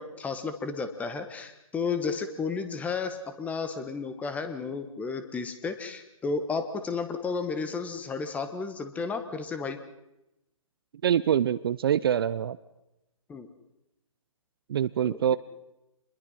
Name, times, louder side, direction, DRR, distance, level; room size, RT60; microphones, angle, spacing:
voice 1, 0.0-9.8 13.3-13.5 15.1-15.4, left 4 dB, 10° left, 9 dB, 1.4 m, -33 dB
voice 2, 11.0-12.6 14.7-15.4, right 9 dB, 45° right, 15 dB, 0.7 m, -25 dB
27.0 x 21.5 x 5.7 m, 0.90 s
figure-of-eight pair, 145°, 18 cm